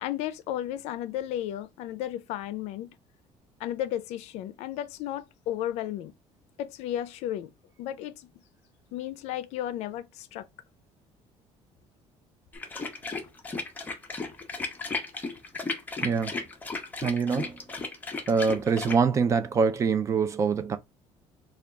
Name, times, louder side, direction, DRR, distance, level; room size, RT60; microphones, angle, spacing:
voice 1, 0.0-2.9 3.6-6.1 6.6-7.5 7.8-8.3 8.9-10.5, left 12 dB, 75° left, 0.4 m, -33 dB
sound 1, 12.5-19.0, left 3 dB, 15° left, 0.6 m, -35 dB
voice 2, 16.0-16.4 17.0-17.6 18.3-20.8, right 5 dB, 25° right, 0.4 m, -24 dB
3.4 x 2.3 x 3.7 m
cardioid pair, 155°, 11 cm